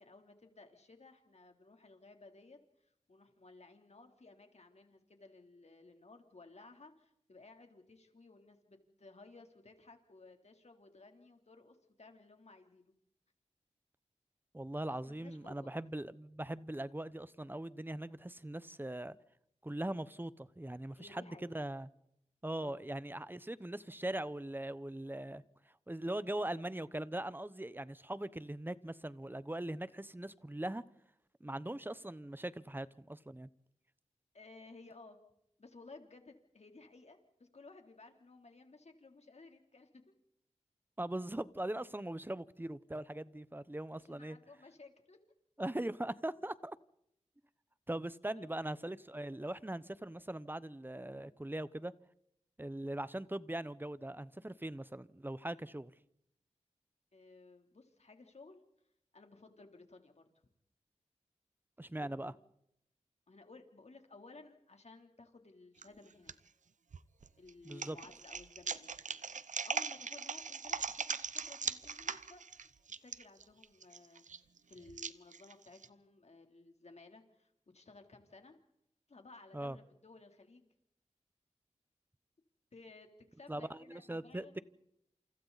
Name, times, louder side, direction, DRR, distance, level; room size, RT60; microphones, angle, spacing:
voice 1, 0.0-12.9 15.0-15.7 20.9-21.6 22.6-22.9 34.3-35.2 35.6-40.0 44.0-45.2 48.3-48.5 57.1-58.6 59.1-60.3 62.0-62.3 63.3-66.3 67.4-68.9 69.6-72.4 73.0-78.6 79.1-80.7 82.7-84.6, left 3 dB, 60° left, 3.3 m, -57 dB
voice 2, 14.5-19.1 19.6-21.9 22.4-25.4 25.9-30.8 31.4-33.5 41.0-44.4 45.6-46.8 47.9-51.9 52.6-55.9 61.8-62.3 67.6-68.0 79.5-79.8 83.5-84.5, right 1 dB, 15° right, 0.9 m, -40 dB
sound 1, 65.8-66.3 66.9-75.9, right 5 dB, 85° right, 0.8 m, -40 dB
29.0 x 28.0 x 4.1 m
wide cardioid pair, 65°, 13 cm